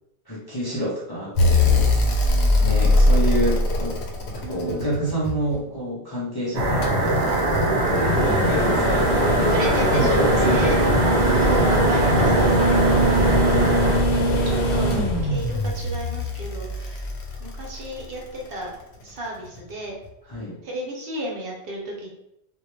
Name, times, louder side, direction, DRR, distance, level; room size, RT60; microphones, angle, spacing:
voice 1, 0.3-1.9 2.6-4.0 4.4-7.5 8.0-10.8 11.4-11.5 20.3-20.6, right 1 dB, 35° left, -8 dB, 0.4 m, -28 dB
sound 1, 1.4-5.5 6.8-18.0 19.6-19.7, left 1 dB, 85° left, 0.9 m, -22 dB
voice 2, 2.0-2.6 4.4-4.9 8.1-8.7 9.3-10.7 11.1-17.1 17.4-18.7 19.0-20.0 20.6-22.1, right 1 dB, 65° right, -2 dB, 0.8 m, -34 dB
sound 2, 6.5-14.0, right 1 dB, 85° right, 1.0 m, -21 dB
2.1 x 2.1 x 3.0 m, 0.82 s
omnidirectional pair, 1.1 m